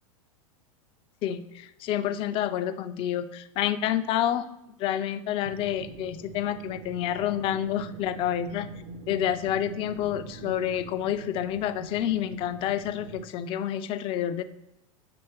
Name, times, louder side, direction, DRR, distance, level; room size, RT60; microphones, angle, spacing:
voice 1, 1.2-4.5 4.8-8.7 9.1-14.4, left 11 dB, 30° left, 11 dB, 0.4 m, -28 dB
sound 1, 5.4-13.2, right 2 dB, 45° right, 0.6 m, -43 dB
7.8 x 3.2 x 4.3 m, 0.87 s
figure-of-eight pair, 85°, 18 cm